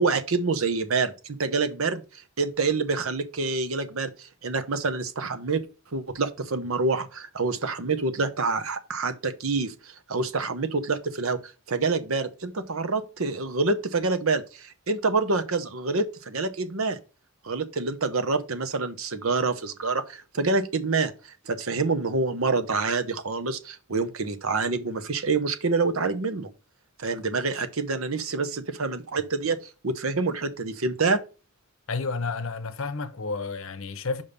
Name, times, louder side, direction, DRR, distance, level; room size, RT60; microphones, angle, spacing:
voice 1, 0.0-2.0 2.4-5.6 5.9-11.4 11.7-17.0 17.4-26.5 27.0-31.2, right 3 dB, 70° right, 0.9 m, -27 dB
voice 2, 31.9-34.2, left 4 dB, 65° left, 0.8 m, -31 dB
5.4 x 5.3 x 5.4 m
head